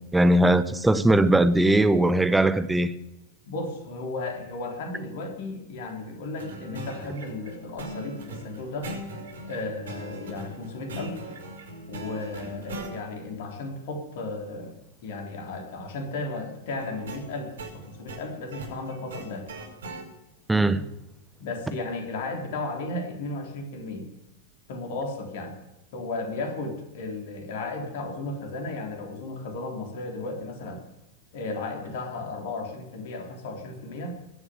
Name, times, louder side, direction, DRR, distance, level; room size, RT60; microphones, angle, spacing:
voice 1, 0.0-2.9 20.5-20.8, right 1 dB, 5° right, 1.0 m, -20 dB
voice 2, 3.5-8.9 9.5-11.2 11.9-14.7 15.0-19.5 20.5-20.8 21.4-24.1 24.7-25.6 25.9-30.8 31.3-34.1, left 2 dB, 55° left, 3.6 m, -34 dB
sound 1, 6.4-12.9 16.7-20.1, right 1 dB, 65° right, 5.4 m, -40 dB
21.5 x 7.3 x 8.2 m
figure-of-eight pair, 90°, 0 cm